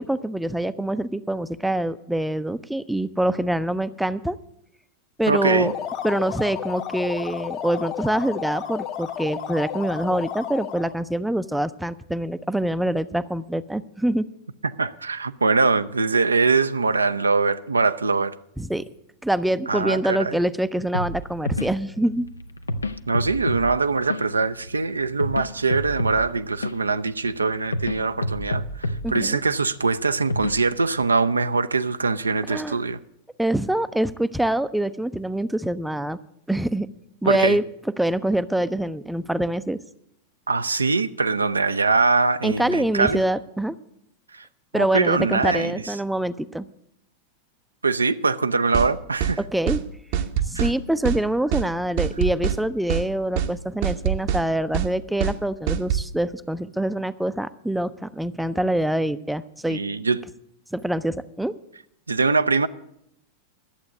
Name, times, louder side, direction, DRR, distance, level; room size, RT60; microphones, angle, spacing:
voice 1, 0.0-4.4 5.2-5.7 6.0-14.3 18.6-18.9 19.2-22.3 29.0-29.4 32.5-32.8 33.4-36.2 36.5-36.9 37.2-37.6 38.0-39.8 42.4-43.8 44.7-46.7 49.5-49.8 50.5-59.8 60.7-61.5, right 1 dB, 5° right, 0.4 m, -25 dB
sound 1, 5.3-11.0, left 10 dB, 40° left, 1.4 m, -32 dB
voice 2, 5.3-5.7 14.8-18.3 19.7-20.4 23.1-33.0 37.2-37.6 40.5-43.2 44.3-44.5 44.7-45.9 47.8-49.4 50.5-50.7 59.7-60.2 62.1-62.7, right 4 dB, 80° right, 0.4 m, -22 dB
sound 2, 20.9-31.0, left 1 dB, 80° left, 0.6 m, -31 dB
sound 3, 48.7-48.9 49.2-49.4 49.7-49.8 50.1-50.7 51.0-51.2 51.5-51.7 52.0-52.6 52.9-53.1 53.4-53.5 53.8-54.4 54.7-54.9 55.2-55.4 55.7-56.0, right 9 dB, 50° right, 0.7 m, -24 dB
11.5 x 7.8 x 8.3 m
figure-of-eight pair, 90°, 0 cm